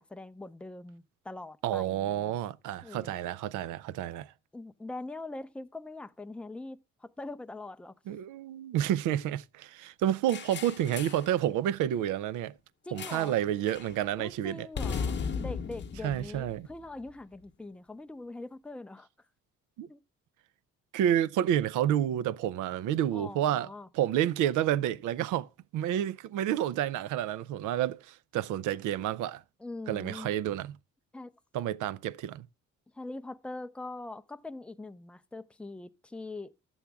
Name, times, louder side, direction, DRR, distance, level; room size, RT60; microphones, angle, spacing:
voice 1, 0.0-2.3 2.8-3.1 4.5-8.0 12.8-13.3 14.2-19.1 19.9-20.0 23.1-23.9 29.6-30.3 31.1-31.3 32.9-36.5, left 2 dB, 5° left, 0.5 m, -42 dB
voice 2, 1.6-4.3 8.1-12.5 12.9-14.7 16.0-16.7 19.8-19.9 20.9-23.7 23.9-25.5 25.7-29.4 29.9-30.8 31.5-32.5, right 11 dB, 90° right, 0.5 m, -29 dB
sound 1, 10.3-11.3 13.0-13.4 13.7-13.9 14.7-17.1, left 6 dB, 35° left, 0.9 m, -36 dB
11.5 x 7.2 x 3.4 m
cardioid pair, 90°, 30 cm